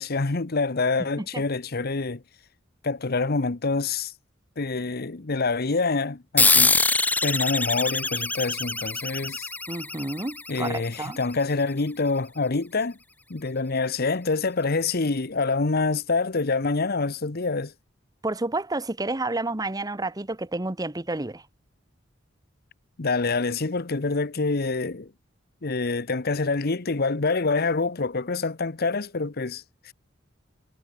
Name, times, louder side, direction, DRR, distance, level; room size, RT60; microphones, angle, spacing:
voice 1, 0.0-2.2 2.8-4.1 4.6-6.8 7.2-9.5 10.5-13.0 13.3-17.7 23.0-25.1 25.6-29.9, left 3 dB, 55° left, 1.0 m, -26 dB
sound 1, 6.4-11.3, left 3 dB, 10° left, 0.6 m, -24 dB
voice 2, 9.7-11.2 18.2-21.4, right 2 dB, 20° right, 1.1 m, -30 dB
head